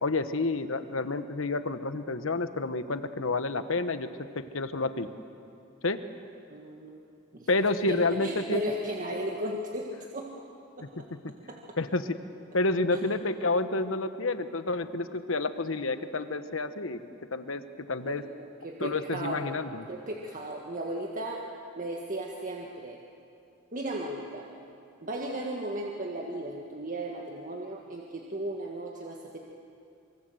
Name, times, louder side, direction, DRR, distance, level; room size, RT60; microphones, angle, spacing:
voice 1, 0.0-4.1 4.3-5.1 5.8-6.0 7.5-8.6 10.8-10.9 11.2-11.3 11.8-12.2 12.5-17.0 17.3-18.2 18.8-19.9, left 2 dB, 80° left, 10 dB, 1.2 m, -29 dB
voice 2, 6.5-7.0 7.3-7.5 7.9-10.5 10.8-11.1 11.5-11.8 12.9-13.1 18.1-19.5 19.9-21.4 21.8-23.0 23.7-24.5 25.0-29.4, right 1 dB, 40° right, 0 dB, 1.8 m, -36 dB
26.0 x 24.0 x 7.9 m, 2.6 s
head